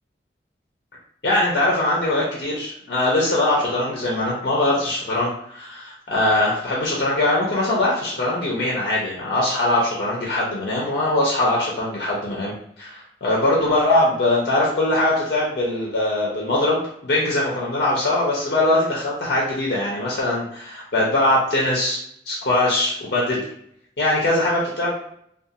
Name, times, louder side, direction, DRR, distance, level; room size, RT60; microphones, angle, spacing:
voice 1, 1.2-22.0 22.3-23.5 24.0-24.9, left 1 dB, 65° left, -4 dB, 0.6 m, -21 dB
2.4 x 2.4 x 2.7 m, 0.71 s
head